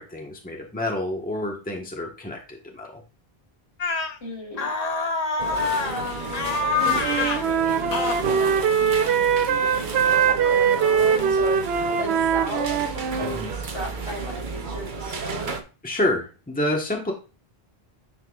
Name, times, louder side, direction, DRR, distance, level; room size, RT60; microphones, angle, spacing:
voice 1, 0.0-3.0 13.3-13.5 15.8-17.1, left 1 dB, 10° left, 0 dB, 1.2 m, -28 dB
sound 1, 3.8-4.1 4.6-6.0 6.3-7.4 7.9-8.2, left 4 dB, 45° left, 0.8 m, -25 dB
voice 2, 4.2-4.7 5.9-11.6 12.0-15.6, left 1 dB, 75° left, -3 dB, 3.5 m, -36 dB
sound 2, 5.4-15.6, right 5 dB, 55° right, 1.0 m, -33 dB
Wind instrument woodwind instrument, 6.6-13.4, right 7 dB, 90° right, 0.9 m, -22 dB
9.8 x 4.5 x 2.4 m, 0.33 s
omnidirectional pair, 1.0 m